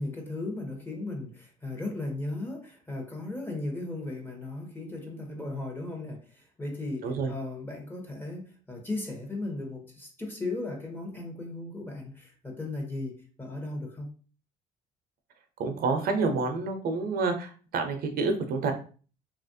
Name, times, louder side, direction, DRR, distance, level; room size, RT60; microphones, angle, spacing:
voice 1, 0.0-14.1, left 2 dB, 10° left, 0.9 m, -36 dB
voice 2, 15.6-18.7, right 4 dB, 65° right, 0.6 m, -28 dB
3.0 x 2.4 x 2.6 m
cardioid pair, 110°, 17 cm